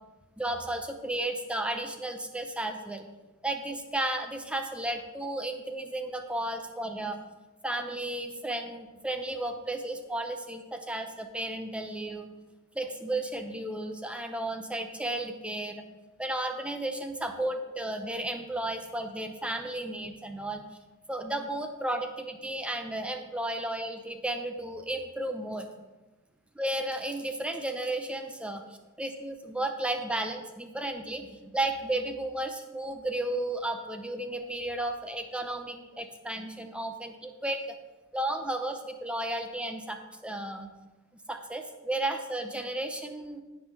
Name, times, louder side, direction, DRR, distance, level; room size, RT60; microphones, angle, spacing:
voice 1, 0.4-3.1 3.4-7.2 7.6-12.3 12.7-15.9 16.2-20.6 21.1-25.7 26.5-28.6 29.0-37.8 38.1-40.7 41.3-43.4, right 1 dB, 5° right, 5 dB, 0.8 m, -33 dB
16.0 x 5.4 x 3.4 m, 1.1 s
head